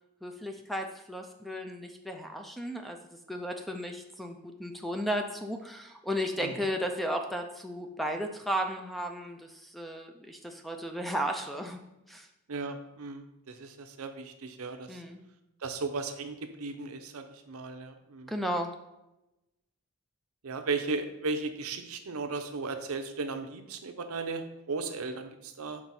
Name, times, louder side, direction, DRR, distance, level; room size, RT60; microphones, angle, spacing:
voice 1, 0.2-3.0 3.3-11.8 12.1-12.3 14.9-15.2 18.3-18.7, equal, ahead, 4 dB, 0.3 m, -34 dB
voice 2, 12.5-15.0 15.6-18.3 20.4-25.8, right 3 dB, 75° right, 7 dB, 0.6 m, -36 dB
6.1 x 3.8 x 4.1 m, 0.93 s
head